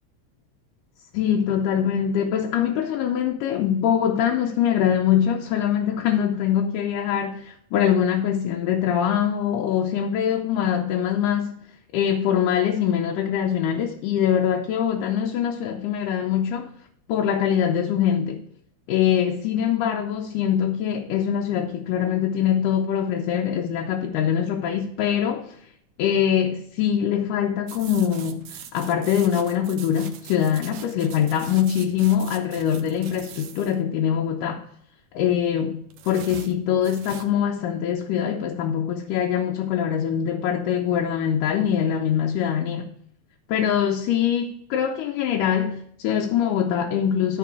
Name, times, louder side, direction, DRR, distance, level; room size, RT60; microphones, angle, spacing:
voice 1, 1.1-11.6 11.9-16.7 17.1-18.4 18.9-25.6 26.0-34.7 35.1-42.9 43.5-47.4, left 9 dB, 80° left, 2.3 m, -23 dB
sound 1, 27.7-33.8 35.9-37.3, right 9 dB, 70° right, 1.8 m, -42 dB
12.0 x 5.2 x 4.7 m
omnidirectional pair, 3.8 m